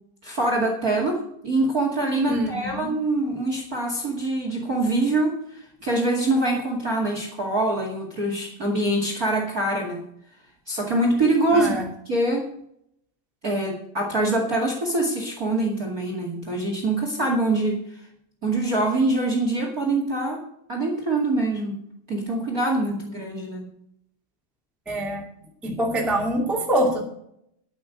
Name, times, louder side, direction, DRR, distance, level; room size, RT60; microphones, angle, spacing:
voice 1, 0.2-10.1 10.7-11.7 12.0-12.5 13.4-18.0 18.4-20.4 20.7-21.8 22.1-23.7, right 2 dB, 30° right, 1 dB, 1.7 m, -24 dB
voice 2, 2.3-2.9 11.5-11.9 24.8-25.2 25.6-27.0, right 1 dB, ahead, -1 dB, 1.1 m, -25 dB
11.0 x 8.6 x 6.4 m, 0.72 s
omnidirectional pair, 5.0 m